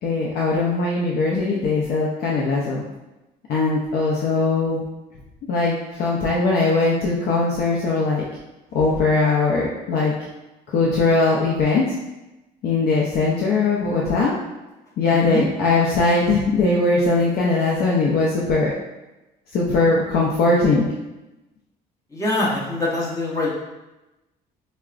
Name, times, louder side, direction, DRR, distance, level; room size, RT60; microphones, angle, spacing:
voice 1, 0.0-2.8 3.5-4.8 5.5-8.2 8.7-10.1 10.7-11.8 12.6-14.4 15.0-18.7 19.5-20.9, left 3 dB, 65° left, -4 dB, 0.5 m, -20 dB
voice 2, 15.1-15.4 22.1-23.5, left 2 dB, 20° left, -6 dB, 1.1 m, -24 dB
4.5 x 2.1 x 2.4 m, 1.0 s
cardioid pair, 110°, 17 cm